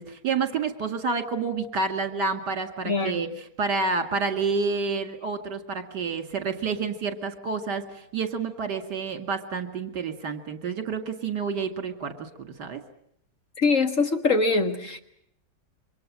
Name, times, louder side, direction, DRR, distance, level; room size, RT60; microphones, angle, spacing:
voice 1, 0.0-3.3 3.6-12.8, right 4 dB, 70° right, 7 dB, 2.7 m, -29 dB
voice 2, 2.9-3.2 13.6-15.0, left 3 dB, 45° left, 6 dB, 2.2 m, -23 dB
27.5 x 24.0 x 7.4 m, 0.70 s
omnidirectional pair, 1.9 m